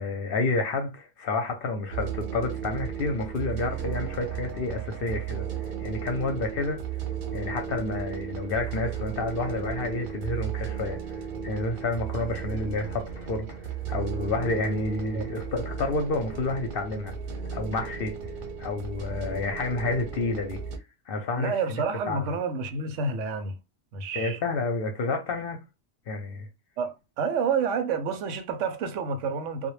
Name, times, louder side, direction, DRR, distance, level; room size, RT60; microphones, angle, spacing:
voice 1, 0.0-6.8 7.3-17.1 17.5-18.2 18.6-20.6 21.1-21.6 22.1-22.2 24.1-25.6 26.1-26.5, left 3 dB, 60° left, 0.7 m, -30 dB
sound 1, 1.9-20.8, right 8 dB, 60° right, 0.6 m, -35 dB
voice 2, 21.4-23.6 23.9-24.4 26.8-29.7, right 5 dB, 90° right, 0.9 m, -29 dB
2.2 x 2.1 x 3.0 m
omnidirectional pair, 1.2 m